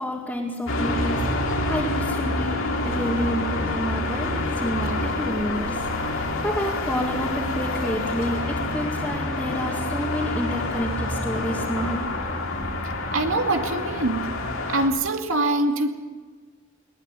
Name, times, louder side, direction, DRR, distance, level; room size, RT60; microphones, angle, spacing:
voice 1, 0.0-2.6 2.8-5.8 6.1-12.0, equal, 5° left, -5 dB, 2.3 m, -29 dB
sound 1, 0.7-14.9, left 2 dB, 80° left, 3.4 m, -27 dB
voice 2, 13.1-14.3 14.7-15.9, right 2 dB, 85° right, 4 dB, 2.3 m, -23 dB
20.5 x 19.0 x 8.3 m, 1.4 s
head